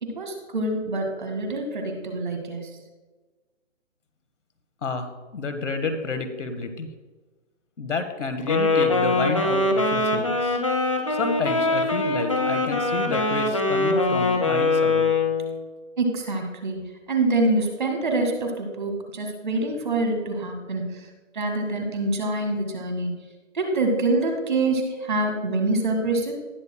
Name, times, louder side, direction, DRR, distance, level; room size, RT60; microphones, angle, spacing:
voice 1, 0.0-2.7 16.0-16.8 17.1-20.8 21.3-23.1 23.5-26.3, right 2 dB, 40° right, 4 dB, 1.8 m, -25 dB
voice 2, 4.8-6.9 7.8-10.6 11.1-15.1, left 4 dB, 75° left, 8 dB, 1.3 m, -30 dB
Wind instrument woodwind instrument, 8.4-15.6, left 2 dB, 25° left, 0.6 m, -23 dB
18.5 x 6.9 x 2.2 m, 1.3 s
hypercardioid pair, 180°, 36 cm